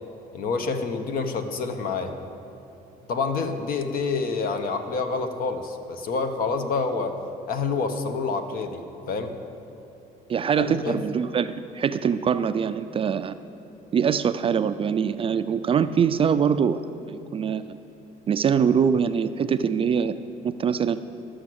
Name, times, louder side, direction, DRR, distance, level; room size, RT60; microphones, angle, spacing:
voice 1, 0.3-2.1 3.1-7.1 7.5-9.3 10.5-11.0, left 4 dB, 60° left, 7 dB, 1.0 m, -27 dB
voice 2, 10.3-13.3 13.9-16.8 17.1-17.8 18.3-20.2 20.4-21.0, right 7 dB, 35° right, 12 dB, 0.3 m, -23 dB
12.0 x 6.3 x 7.8 m, 2.9 s
cardioid pair, 110°, 17 cm